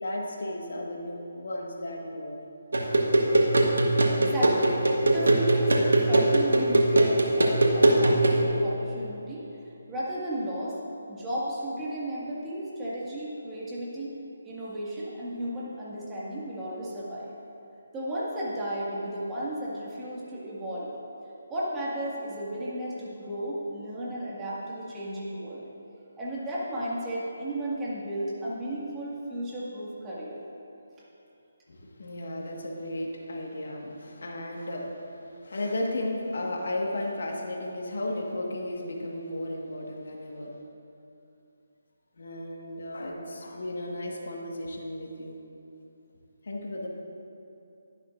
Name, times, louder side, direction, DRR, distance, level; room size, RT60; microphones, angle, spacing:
voice 1, 0.0-2.4 31.7-40.5 42.2-45.4 46.4-46.9, left 1 dB, 65° left, 0 dB, 1.6 m, -34 dB
sound 1, 2.7-8.4, right 2 dB, 75° right, 1.3 m, -21 dB
voice 2, 4.2-4.7 5.1-9.5 9.9-10.8 11.1-14.1 14.4-17.3 17.9-20.9 21.5-25.6 26.2-30.4, right 1 dB, 15° right, -7 dB, 1.9 m, -34 dB
11.5 x 10.5 x 2.6 m, 2.8 s
figure-of-eight pair, 155°, 0 cm